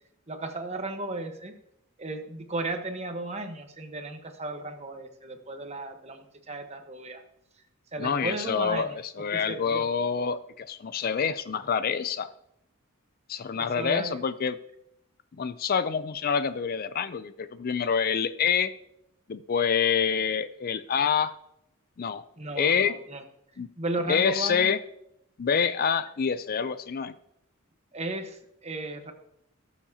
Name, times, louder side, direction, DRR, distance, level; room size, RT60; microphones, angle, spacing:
voice 1, 0.3-1.5 2.0-7.2 7.9-9.0 9.3-9.9 13.6-14.2 22.4-23.2 23.8-24.7 27.9-29.1, right 2 dB, 30° right, 5 dB, 1.1 m, -35 dB
voice 2, 8.0-12.3 13.3-14.6 15.4-18.7 19.3-21.3 22.0-22.2 22.6-22.9 23.6-23.7 24.1-24.8 25.4-27.1, left 6 dB, 45° left, 13 dB, 0.4 m, -27 dB
17.5 x 7.2 x 2.8 m, 0.78 s
head